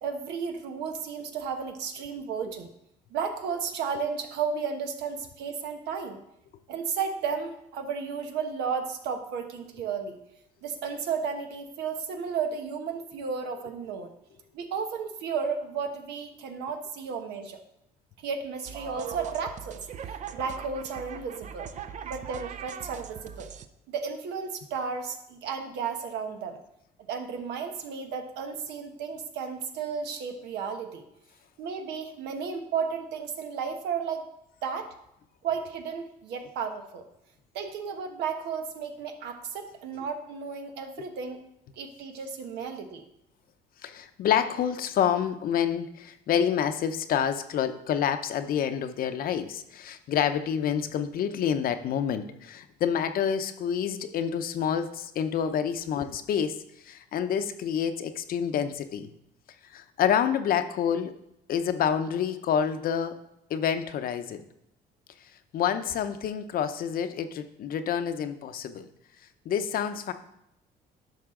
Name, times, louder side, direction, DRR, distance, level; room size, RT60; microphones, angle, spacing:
voice 1, 0.0-2.7 3.1-6.2 6.7-10.2 10.6-14.1 14.5-17.6 18.2-19.8 20.3-21.7 22.0-23.5 23.9-26.6 27.1-31.0 31.6-34.2 34.6-34.9 35.4-37.0 37.5-41.4 41.8-43.0, right 6 dB, 85° right, 5 dB, 1.2 m, -33 dB
sound 1, 18.7-23.7, right 8 dB, 45° right, 0.6 m, -40 dB
voice 2, 43.8-59.1 59.6-61.2 61.5-63.2 63.5-64.4 65.5-68.9 69.4-70.1, left 8 dB, 60° left, 9 dB, 0.7 m, -28 dB
10.5 x 6.2 x 3.7 m, 0.81 s
cardioid pair, 110°, 17 cm